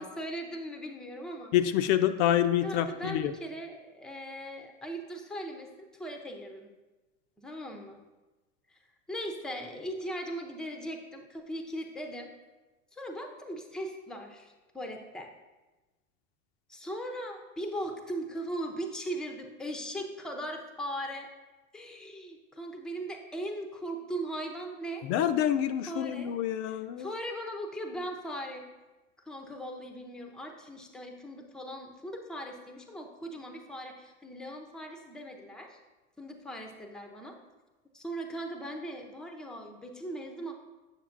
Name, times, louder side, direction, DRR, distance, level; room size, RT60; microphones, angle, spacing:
voice 1, 0.0-1.5 2.6-5.7 6.0-6.7 7.4-8.0 8.7-8.8 9.1-12.3 12.9-15.3 16.7-21.3 21.7-25.1 25.9-26.3 26.6-28.6 29.3-35.8 36.2-37.4 37.9-40.5, right 1 dB, ahead, 3 dB, 0.5 m, -39 dB
voice 2, 1.5-3.3 25.0-27.1, left 11 dB, 55° left, 10 dB, 0.5 m, -27 dB
7.3 x 6.6 x 2.5 m, 1.1 s
supercardioid pair, 115°, 40 cm